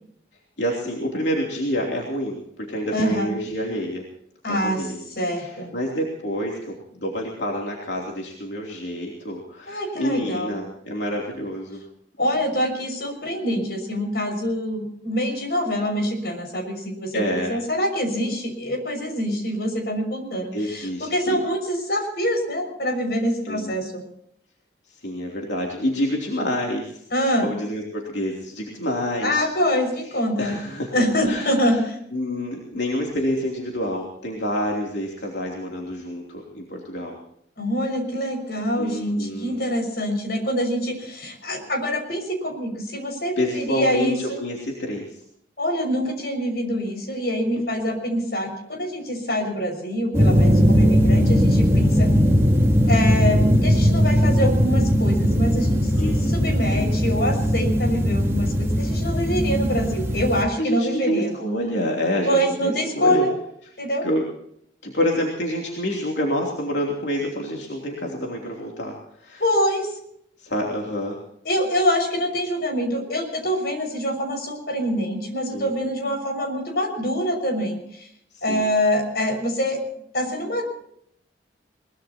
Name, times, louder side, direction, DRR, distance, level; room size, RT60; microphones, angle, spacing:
voice 1, 0.6-4.1 4.5-5.0 5.4-6.7 7.0-11.8 17.1-17.6 20.5-21.4 23.4-23.7 24.9-27.0 27.4-29.5 30.4-30.9 31.2-31.8 32.1-37.2 38.8-39.6 43.4-45.2 47.5-47.6 56.0-57.0 60.6-63.3 64.0-64.3 64.8-69.4 70.4-71.2 75.5-75.7 78.3-78.7, equal, 80° left, -1 dB, 3.1 m, -28 dB
voice 2, 2.9-3.4 4.4-4.9 5.2-5.7 9.7-10.5 12.2-24.0 27.1-27.5 29.2-30.5 30.9-32.0 37.6-44.4 45.6-52.1 52.9-61.3 62.2-63.3 63.8-64.1 69.4-70.0 71.4-78.1 78.4-79.8 80.1-80.7, equal, 60° left, 4 dB, 6.2 m, -25 dB
sound 1, 50.1-60.4, equal, 15° right, 2.5 m, -19 dB
22.5 x 21.0 x 2.9 m, 0.71 s
head